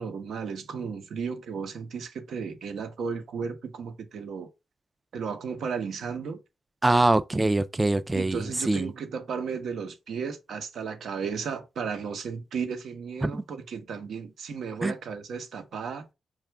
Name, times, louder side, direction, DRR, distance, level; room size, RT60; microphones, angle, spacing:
voice 1, 0.0-4.5 5.1-6.4 8.1-16.1, right 6 dB, 75° right, 0.9 m, -34 dB
voice 2, 6.8-8.9 13.2-13.4 14.8-14.9, right 2 dB, 20° right, 0.4 m, -24 dB
4.8 x 2.4 x 3.3 m
cardioid pair, 60°, 0 cm